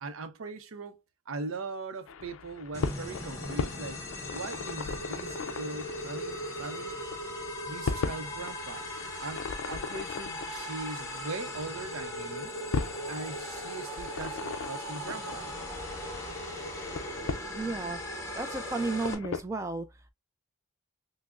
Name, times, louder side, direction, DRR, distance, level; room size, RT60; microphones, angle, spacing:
voice 1, 0.0-4.0 4.3-7.0 7.6-8.9 9.2-12.5 13.1-15.5, right 3 dB, 80° right, 0.6 m, -40 dB
sound 1, 2.1-19.4, left 5 dB, 75° left, 0.4 m, -39 dB
sound 2, 2.7-19.1, equal, 15° left, 0.8 m, -39 dB
voice 2, 17.5-18.0 18.4-19.9, right 3 dB, 15° right, 0.3 m, -33 dB
5.6 x 2.0 x 2.4 m
head